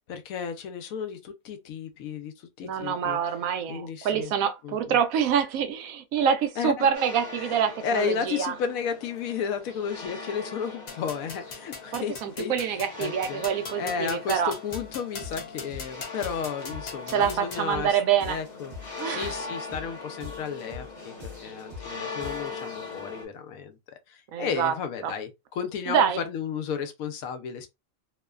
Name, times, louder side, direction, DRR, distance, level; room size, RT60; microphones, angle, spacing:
voice 1, 0.1-3.2 3.7-4.3 4.6-5.0 6.6-6.9 7.4-12.5 13.0-13.4 13.7-18.0 18.3-27.7, left 7 dB, 85° left, 1.0 m, -33 dB
voice 2, 2.6-8.5 11.9-14.5 17.1-18.4 19.0-19.3 24.3-24.7 25.0-25.1 25.9-26.2, right 8 dB, 85° right, 1.0 m, -26 dB
sound 1, 6.9-23.2, left 4 dB, 40° left, 0.8 m, -41 dB
sound 2, 10.9-17.7, left 5 dB, 55° left, 0.4 m, -41 dB
sound 3, 14.7-14.9 15.2-15.9 16.2-16.9 17.2-17.9 18.2-18.9 19.2-19.9 20.2-20.9 21.2-21.9 22.2-22.6, left 3 dB, 35° right, 1.1 m, -42 dB
2.9 x 2.1 x 2.3 m
omnidirectional pair, 1.4 m